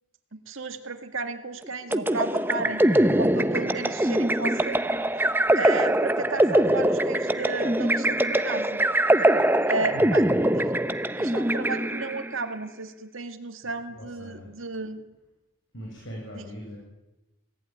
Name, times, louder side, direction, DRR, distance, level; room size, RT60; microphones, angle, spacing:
voice 1, 0.3-2.8 3.2-4.8 5.5-8.9 9.7-10.2 11.2-15.1 16.3-16.5, right 3 dB, 70° right, 7 dB, 2.0 m, -33 dB
sound 1, 1.9-12.3, right 1 dB, 10° right, 0.8 m, -23 dB
voice 2, 13.6-14.6 15.7-16.8, equal, 60° left, -2 dB, 7.7 m, -40 dB
28.0 x 18.0 x 9.5 m, 1.0 s
head